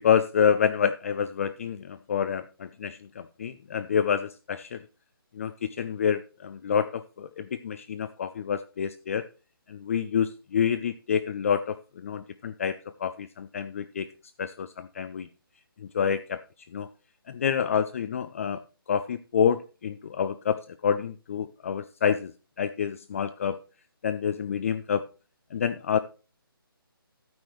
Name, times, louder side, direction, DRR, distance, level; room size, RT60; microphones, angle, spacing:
voice 1, 0.0-4.8 5.4-9.2 9.7-14.1 14.4-15.3 15.8-16.4 16.7-16.9 17.3-18.6 18.9-22.3 22.6-23.6 24.0-25.0 25.5-26.0, left 7 dB, 35° left, 12 dB, 0.4 m, -28 dB
11.5 x 9.3 x 3.1 m, 0.34 s
figure-of-eight pair, 145°, 13 cm